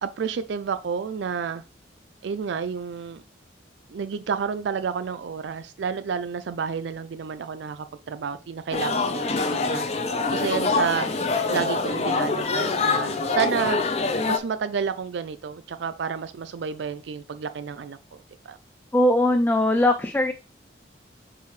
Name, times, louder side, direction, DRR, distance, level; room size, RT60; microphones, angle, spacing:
voice 1, 0.0-1.6 2.2-3.2 3.9-11.1 11.5-13.8 14.3-18.6, right 6 dB, 70° right, 12 dB, 0.4 m, -30 dB
sound 1, 8.7-14.4, left 3 dB, 35° left, 0.7 m, -25 dB
voice 2, 18.9-20.3, left 1 dB, 10° left, 7 dB, 0.3 m, -20 dB
6.8 x 4.6 x 3.2 m, 0.33 s
head